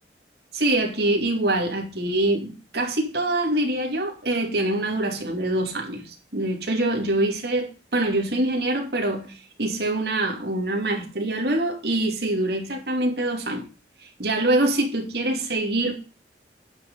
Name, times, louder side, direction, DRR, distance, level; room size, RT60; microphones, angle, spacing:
voice 1, 0.5-13.6 14.0-16.0, right 1 dB, 70° right, 2.8 m, -25 dB
9.5 x 6.4 x 5.4 m
head